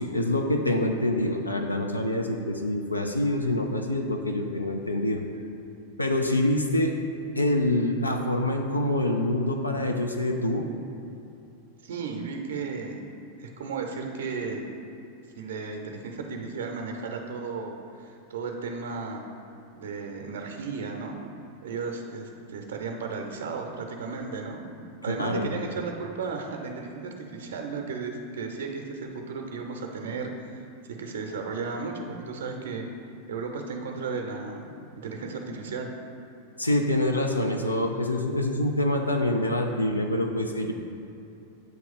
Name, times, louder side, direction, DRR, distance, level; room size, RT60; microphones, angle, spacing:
voice 1, 0.0-5.2 6.0-6.9 7.4-10.7 25.1-25.5 36.6-40.7, left 1 dB, 85° left, 3 dB, 0.4 m, -26 dB
voice 2, 11.8-13.0 13.4-14.6 15.4-19.2 19.7-21.1 21.6-24.6 25.0-30.6 31.0-32.9 33.3-34.7 35.0-35.9, right 4 dB, 55° right, 3 dB, 0.7 m, -34 dB
7.8 x 3.0 x 5.4 m, 2.7 s
figure-of-eight pair, 90°, 0 cm